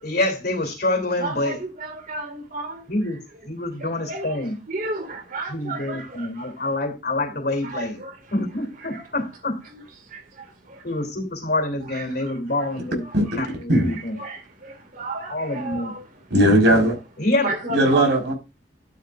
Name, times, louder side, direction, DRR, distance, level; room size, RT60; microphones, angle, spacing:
voice 1, 0.0-1.6 2.9-4.6 5.5-8.0 8.3-9.6 10.8-14.1 15.3-16.0 17.2-17.5, left 2 dB, 60° left, 2.9 m, -26 dB
voice 2, 1.2-2.8 3.8-6.5 7.6-8.2 8.9-9.0 9.7-9.8 10.1-10.8 11.9-12.0 12.6-12.7 13.7-13.8 14.2-16.0 17.4-18.1, right 2 dB, 50° right, 2.2 m, -33 dB
voice 3, 16.3-17.0 17.7-18.3, right 1 dB, 85° right, 4.7 m, -17 dB
11.5 x 11.0 x 2.5 m
head